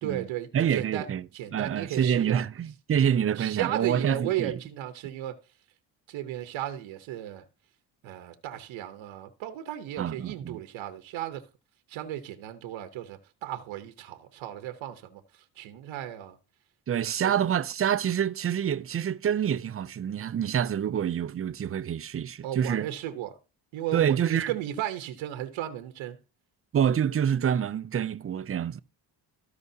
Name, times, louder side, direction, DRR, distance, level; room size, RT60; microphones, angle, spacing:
voice 1, 0.0-1.0 1.3-2.4 3.4-5.3 6.1-7.4 8.0-11.4 11.9-15.2 15.6-16.3 17.2-17.3 22.4-23.4 23.7-26.2, right 12 dB, 90° right, 1.0 m, -35 dB
voice 2, 0.5-1.3 1.5-4.6 10.0-10.6 16.9-22.9 23.9-24.6 26.7-28.8, right 9 dB, 30° right, 0.5 m, -27 dB
14.0 x 4.9 x 2.7 m
cardioid pair, 80°, 46 cm